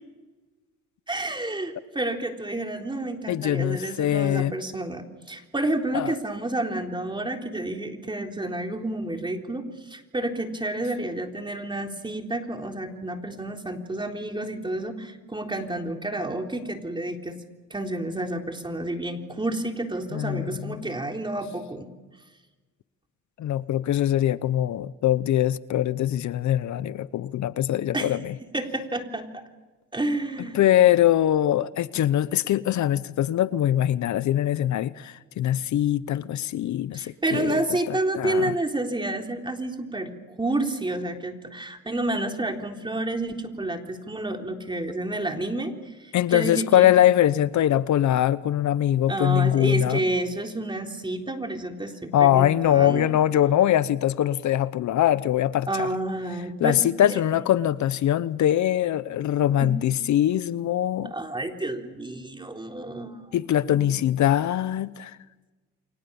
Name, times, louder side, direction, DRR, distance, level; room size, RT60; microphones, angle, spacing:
voice 1, 1.1-17.4 17.7-21.9 27.9-28.2 28.5-29.4 29.9-30.7 36.9-40.1 40.4-47.0 49.1-53.1 55.7-56.8 57.1-57.2 59.6-59.7 61.0-63.2 63.7-64.0, right 2 dB, 15° right, 3.7 m, -30 dB
voice 2, 3.3-4.5 5.9-6.2 20.1-20.8 23.4-28.3 30.5-37.6 37.9-38.5 46.1-50.0 52.1-55.9 56.6-61.1 63.3-65.1, left 12 dB, 70° left, 0.9 m, -22 dB
29.5 x 24.0 x 7.1 m
cardioid pair, 90°, 30 cm